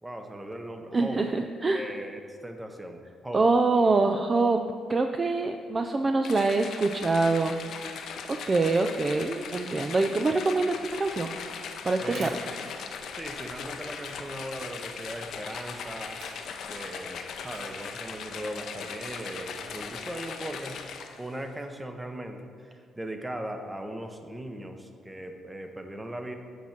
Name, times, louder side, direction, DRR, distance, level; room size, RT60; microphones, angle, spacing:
voice 1, 0.0-1.2 1.7-3.5 12.0-12.6 13.2-16.2 16.6-20.8 21.2-26.4, right 1 dB, 10° right, 5 dB, 0.8 m, -38 dB
voice 2, 0.9-1.9 3.3-4.6 4.9-7.8 8.4-11.3 11.8-12.3, right 3 dB, 30° right, 5 dB, 0.4 m, -25 dB
sound 1, 6.2-21.3, left 6 dB, 70° left, 0.6 m, -39 dB
sound 2, 10.9-13.3 14.0-14.4 16.0-16.5 17.5-17.8 18.3-18.4, right 2 dB, 80° right, 1.3 m, -49 dB
8.2 x 4.4 x 5.9 m, 2.2 s
cardioid pair, 90°, 0 cm